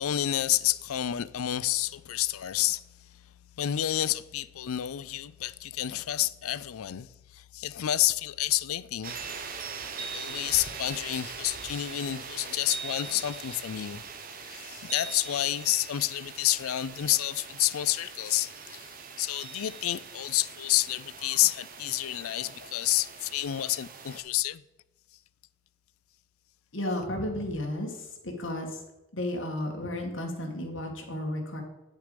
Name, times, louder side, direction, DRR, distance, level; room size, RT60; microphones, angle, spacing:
voice 1, 0.0-2.8 3.1-3.2 3.6-9.2 10.0-14.0 14.5-24.6, left 13 dB, 85° left, 0.4 m, -29 dB
sound 1, 9.0-24.2, right 5 dB, 40° right, 0.9 m, -42 dB
voice 2, 26.7-27.9 28.2-28.7 29.1-31.6, left 1 dB, 60° left, 2.0 m, -33 dB
9.6 x 6.5 x 5.1 m
head